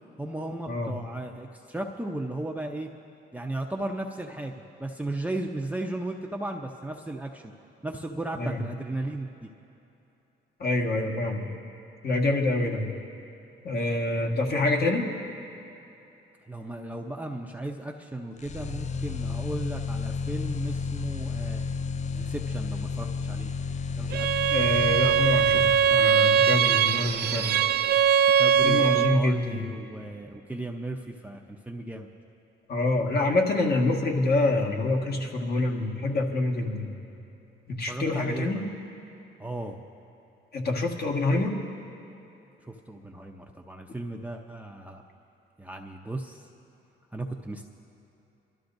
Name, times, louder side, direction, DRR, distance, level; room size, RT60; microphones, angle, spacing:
voice 1, 0.2-2.9 3.3-7.5 7.8-9.5 14.1-14.3 16.4-21.6 22.1-23.5 24.0-24.5 28.4-32.1 36.6-36.7 37.9-38.7 39.4-39.8 42.6-45.0 45.6-46.5 47.1-47.7, right 2 dB, 5° right, 1 dB, 0.7 m, -35 dB
voice 2, 10.6-11.5 12.0-12.9 13.6-15.1 24.5-27.6 28.6-29.6 32.7-36.9 37.7-38.6 40.5-41.6, left 2 dB, 50° left, 1 dB, 1.7 m, -26 dB
sound 1, 18.4-26.4, left 5 dB, 35° left, 0.4 m, -32 dB
Bowed string instrument, 24.1-29.3, right 8 dB, 55° right, 0.4 m, -21 dB
26.5 x 13.0 x 2.7 m, 2.9 s
cardioid pair, 90°, 20 cm